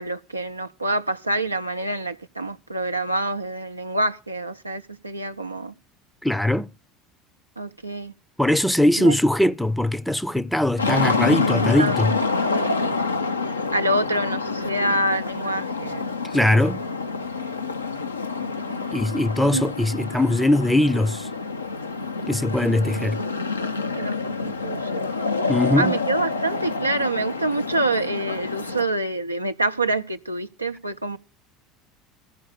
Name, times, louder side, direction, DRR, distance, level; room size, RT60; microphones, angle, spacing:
voice 1, 0.0-5.7 7.6-8.1 9.0-9.1 11.8-12.0 12.5-12.7 13.7-16.1 18.4-18.9 19.5-19.6 23.9-24.9 25.8-31.2, right 2 dB, 90° right, 0.5 m, -26 dB
voice 2, 6.2-6.7 8.4-12.1 16.3-16.8 18.9-21.3 22.3-23.2 25.5-26.0, left 1 dB, 5° left, 0.5 m, -21 dB
sound 1, 10.8-28.9, left 4 dB, 85° left, 0.6 m, -27 dB
14.0 x 4.7 x 8.4 m
figure-of-eight pair, 70°, 0 cm